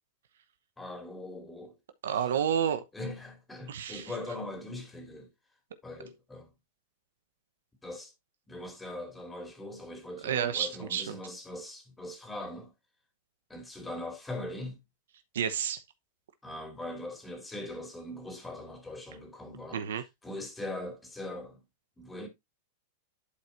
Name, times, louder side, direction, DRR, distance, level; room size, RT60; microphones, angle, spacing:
voice 1, 0.8-1.8 2.9-5.3 5.8-6.5 7.8-8.1 8.5-12.7 13.5-14.8 16.4-19.8 20.2-21.6 22.0-22.3, left 1 dB, 10° left, 2.6 m, -41 dB
voice 2, 2.0-2.8 3.7-4.1 10.2-11.2 15.3-15.8 19.7-20.0, right 8 dB, 80° right, 0.9 m, -30 dB
11.5 x 4.6 x 2.6 m
hypercardioid pair, 120°, 0 cm